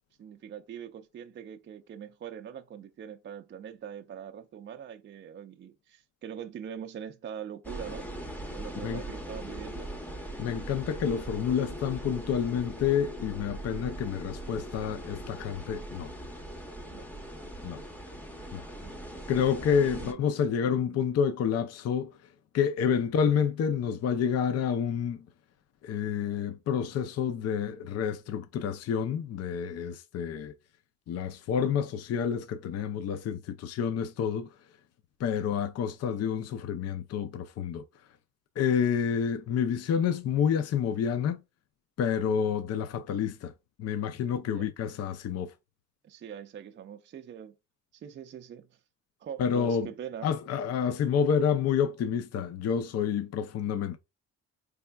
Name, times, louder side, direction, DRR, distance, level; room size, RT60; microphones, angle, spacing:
voice 1, 0.2-8.1 8.5-9.9 16.8-17.1 17.6-17.8 18.8-19.0 19.7-20.2 20.6-21.0 42.2-42.4 44.4-44.7 46.0-47.5 47.9-48.8 49.2-50.3, right 8 dB, 40° right, 0.4 m, -43 dB
sound 1, 7.6-20.1, right 1 dB, 5° left, 0.8 m, -40 dB
voice 2, 10.4-16.1 17.6-17.8 18.5-18.6 19.3-22.1 22.5-25.2 25.8-30.5 31.1-34.5 35.2-37.8 38.6-41.4 42.0-43.5 43.8-45.5 49.4-49.9 50.2-54.0, left 7 dB, 55° left, 0.5 m, -29 dB
4.3 x 3.4 x 2.3 m
cardioid pair, 90°, 30 cm